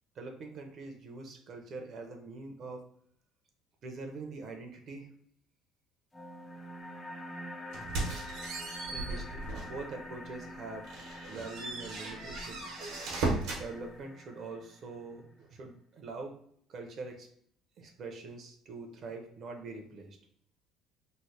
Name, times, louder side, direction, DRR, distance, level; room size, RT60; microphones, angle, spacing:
voice 1, 0.2-2.8 3.8-5.1 8.9-10.9 11.3-12.7 13.5-16.4 16.7-17.3 17.8-20.2, right 3 dB, 40° right, 4 dB, 0.6 m, -44 dB
sound 1, 6.1-15.1, left 1 dB, 5° left, 0.4 m, -46 dB
sound 2, 7.7-9.8 10.3-10.4 10.8-13.7, right 2 dB, 75° right, 1.0 m, -36 dB
3.1 x 2.1 x 4.1 m, 0.65 s
cardioid pair, 155°, 0 cm